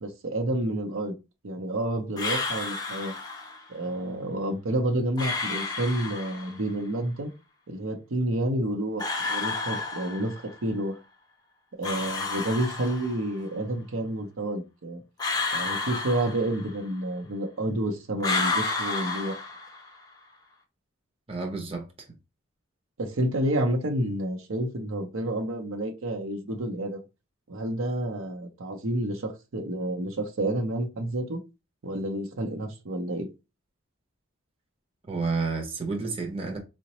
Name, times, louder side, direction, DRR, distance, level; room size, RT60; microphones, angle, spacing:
voice 1, 0.0-1.2 1.4-3.1 3.7-7.3 7.7-10.3 10.6-11.0 11.8-15.0 15.5-19.4 23.0-27.0 27.5-31.4 31.8-33.3, right 1 dB, 85° right, 0.7 m, -29 dB
sound 1, 2.2-3.6 5.2-6.7 9.0-10.5 11.8-13.4 15.2-16.9 18.2-20.0, left 3 dB, 20° left, 0.5 m, -31 dB
voice 2, 21.3-22.1 35.1-36.6, right 4 dB, 30° right, 0.6 m, -30 dB
3.9 x 2.1 x 2.9 m
head